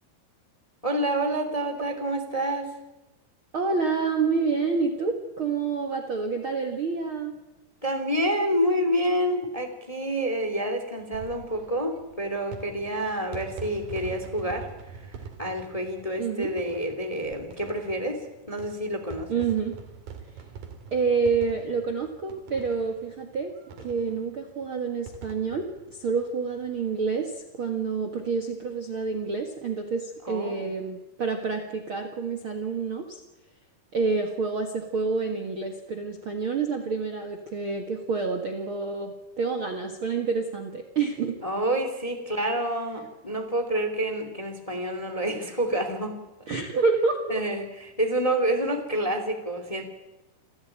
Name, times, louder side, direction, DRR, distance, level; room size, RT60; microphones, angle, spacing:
voice 1, 0.8-2.7 7.8-14.7 15.4-19.4 30.2-30.7 41.4-46.2 47.3-49.8, right 1 dB, 10° left, 6 dB, 2.1 m, -28 dB
voice 2, 3.5-7.4 16.2-16.5 19.3-19.7 20.9-23.5 23.8-25.7 25.9-33.2 33.9-41.4 46.5-47.4, right 4 dB, 45° right, 4 dB, 1.9 m, -28 dB
sound 1, 11.0-27.0 27.3-27.4 27.6-27.7 29.0-29.3, right 5 dB, 65° right, 4.0 m, -45 dB
28.0 x 14.0 x 8.9 m, 1.1 s
omnidirectional pair, 4.5 m